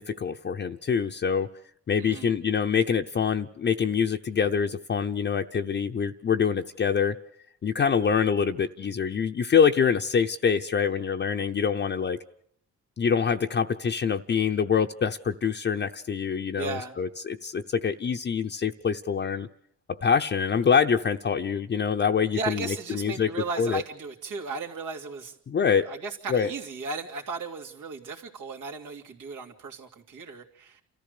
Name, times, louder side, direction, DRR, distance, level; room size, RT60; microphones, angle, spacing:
voice 1, 0.0-1.5 1.9-7.2 7.6-12.2 13.0-19.5 19.9-23.3 23.6-23.8 25.5-25.9 26.3-26.5, left 6 dB, 35° left, 4 dB, 0.7 m, -25 dB
voice 2, 2.0-2.3 16.5-16.9 22.3-25.4 25.8-30.8, right 4 dB, 80° right, 1 dB, 2.8 m, -36 dB
28.0 x 14.0 x 6.7 m, 0.70 s
cardioid pair, 90°, 30 cm